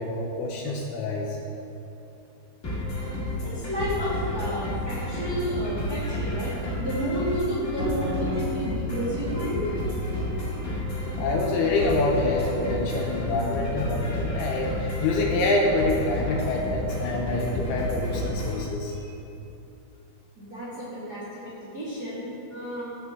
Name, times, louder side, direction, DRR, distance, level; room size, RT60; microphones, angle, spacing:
voice 1, 0.0-1.4 11.2-18.9, left 2 dB, 80° left, -1 dB, 2.4 m, -26 dB
sound 1, 2.6-18.6, left 1 dB, 55° left, 0.8 m, -31 dB
voice 2, 3.4-10.0 18.9-19.1 20.4-22.8, right 1 dB, 75° right, -9 dB, 0.9 m, -31 dB
sound 2, 7.4-13.3 13.9-15.1, left 1 dB, 45° right, 2.1 m, -37 dB
15.5 x 5.5 x 3.5 m, 2.8 s
omnidirectional pair, 5.0 m